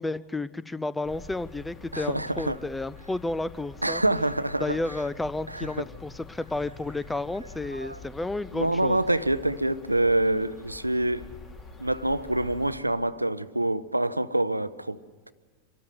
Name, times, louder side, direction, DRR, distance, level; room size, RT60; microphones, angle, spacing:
voice 1, 0.0-4.0 4.6-9.0, left 2 dB, 5° left, 0.6 m, -32 dB
sound 1, 1.0-12.8, left 4 dB, 25° left, 2.6 m, -46 dB
voice 2, 1.9-2.6 3.8-4.8 5.5-5.7 7.7-8.0 8.5-11.3 11.8-15.0, right 1 dB, 85° right, 0.6 m, -26 dB
25.0 x 13.0 x 9.6 m
figure-of-eight pair, 90°, 0 cm